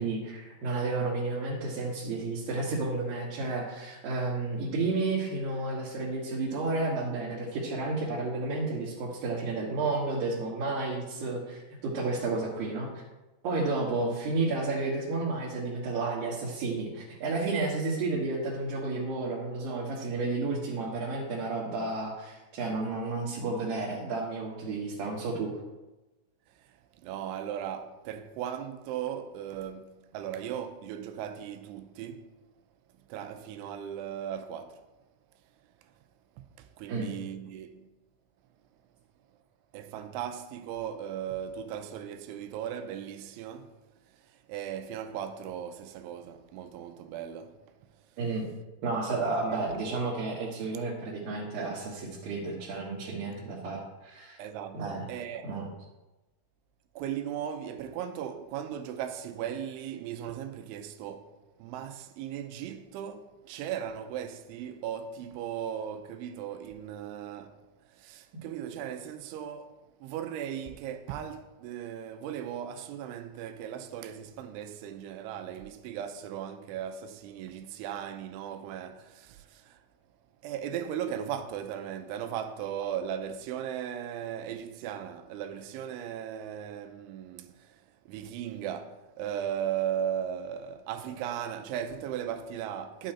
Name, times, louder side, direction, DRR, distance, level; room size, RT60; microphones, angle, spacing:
voice 1, 0.0-13.0 13.4-25.5 36.9-37.1 48.2-48.4 48.8-54.4 54.7-55.1 55.4-55.6, right 3 dB, 60° right, 2.8 m, -31 dB
voice 2, 27.0-32.3 33.1-34.8 36.4-37.9 39.7-43.7 44.5-47.6 49.5-49.6 54.4-55.5 57.0-61.3 61.6-67.6 67.9-79.8 80.4-87.8 88.1-93.1, right 9 dB, 85° right, 3.1 m, -37 dB
11.5 x 9.0 x 4.4 m
omnidirectional pair, 5.5 m